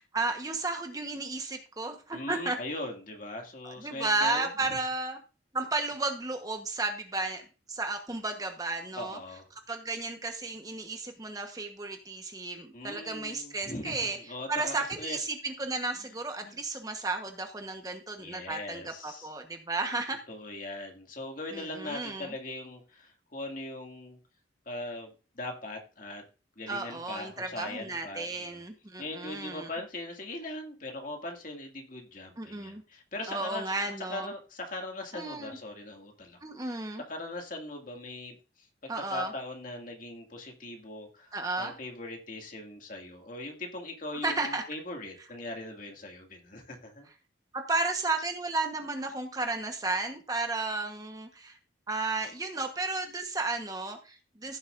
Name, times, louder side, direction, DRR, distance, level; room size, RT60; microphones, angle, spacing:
voice 1, 0.0-2.6 3.6-5.2 5.5-9.2 9.7-14.2 14.5-20.2 21.5-22.3 26.7-29.7 32.4-32.8 33.3-34.3 35.1-35.6 36.4-37.0 38.9-39.3 41.3-41.7 44.2-44.6 47.5-51.6 51.9-54.6, right 3 dB, 20° right, 5 dB, 1.1 m, -33 dB
voice 2, 2.1-4.8 9.0-9.4 12.7-14.0 14.3-15.2 16.4-16.6 18.2-19.3 20.3-24.2 24.7-26.2 26.6-28.6 29.0-33.6 34.0-36.8 37.0-38.4 38.8-47.1, left 2 dB, 45° left, 2 dB, 2.2 m, -40 dB
15.5 x 7.2 x 2.6 m, 0.33 s
head